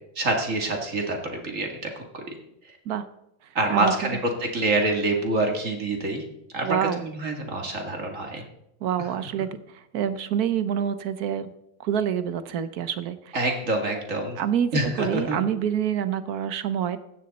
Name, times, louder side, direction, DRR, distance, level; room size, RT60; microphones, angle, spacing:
voice 1, 0.2-2.4 3.6-6.2 6.5-8.4 13.3-14.4 14.7-15.4, right 2 dB, 45° right, 2 dB, 2.2 m, -26 dB
voice 2, 3.7-4.2 6.6-7.0 8.8-11.5 11.8-13.4 14.4-17.0, right 9 dB, 60° right, 12 dB, 1.2 m, -27 dB
14.5 x 9.7 x 4.1 m, 0.80 s
omnidirectional pair, 2.0 m